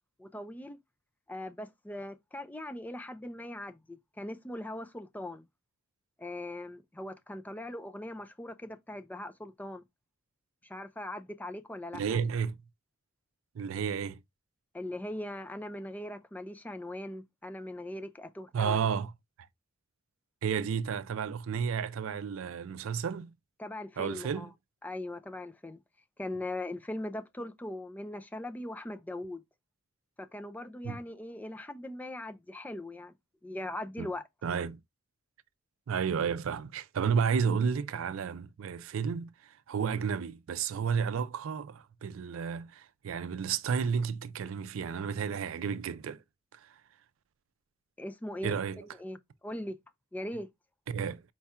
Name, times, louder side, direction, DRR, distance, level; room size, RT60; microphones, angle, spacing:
voice 1, 0.2-0.8 1.3-5.5 6.2-9.8 10.6-12.2 14.7-18.8 23.6-24.5 24.8-25.8 26.2-29.4 30.2-33.1 33.4-34.2 48.0-48.6 49.0-49.8 50.1-50.5, left 1 dB, 10° left, 0.3 m, -40 dB
voice 2, 11.9-12.6 13.5-14.2 18.5-19.1 20.4-23.3 24.0-24.5 30.8-31.0 34.0-34.1 34.4-34.8 35.9-46.2 46.5-46.7 48.4-48.8 50.9-51.2, right 6 dB, 80° right, 0.4 m, -32 dB
4.5 x 2.3 x 4.1 m
head